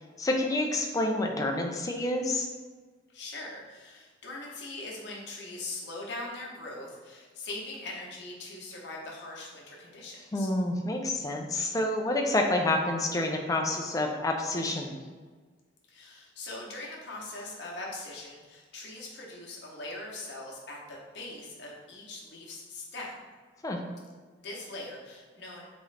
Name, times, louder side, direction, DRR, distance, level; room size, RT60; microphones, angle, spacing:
voice 1, 0.2-2.5 10.3-15.0 23.6-23.8, left 2 dB, 20° left, 2 dB, 0.3 m, -28 dB
voice 2, 3.1-10.5 15.9-23.1 24.4-25.7, left 2 dB, 60° left, -3 dB, 0.8 m, -41 dB
3.6 x 3.0 x 3.2 m, 1.4 s
head